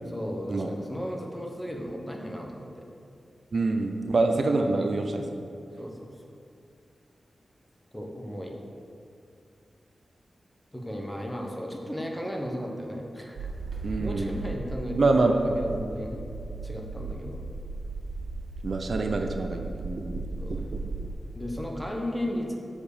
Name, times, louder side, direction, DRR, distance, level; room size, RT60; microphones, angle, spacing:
voice 1, 0.1-2.8 5.8-6.1 7.9-8.5 10.7-13.5 14.0-16.2 16.6-17.4 20.4-20.6 21.3-22.5, equal, 10° left, 0 dB, 1.0 m, -35 dB
voice 2, 3.5-5.4 13.8-14.3 15.0-15.4 18.6-20.2 20.6-20.9, right 3 dB, 55° right, 4 dB, 0.6 m, -26 dB
sound 1, 13.4-21.1, right 3 dB, 80° right, 1.8 m, -36 dB
7.3 x 5.0 x 6.6 m, 2.5 s
wide cardioid pair, 115°, 0 cm